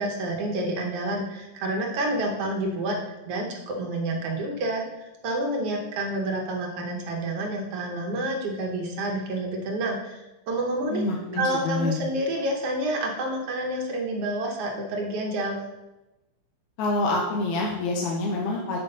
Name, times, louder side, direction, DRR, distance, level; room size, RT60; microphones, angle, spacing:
voice 1, 0.0-3.0 3.3-11.0 11.3-15.6, right 1 dB, 65° right, 1 dB, 1.7 m, -29 dB
voice 2, 10.9-12.1 16.8-18.8, left 2 dB, 75° left, -1 dB, 2.1 m, -27 dB
8.1 x 4.6 x 5.4 m, 1.0 s
omnidirectional pair, 3.5 m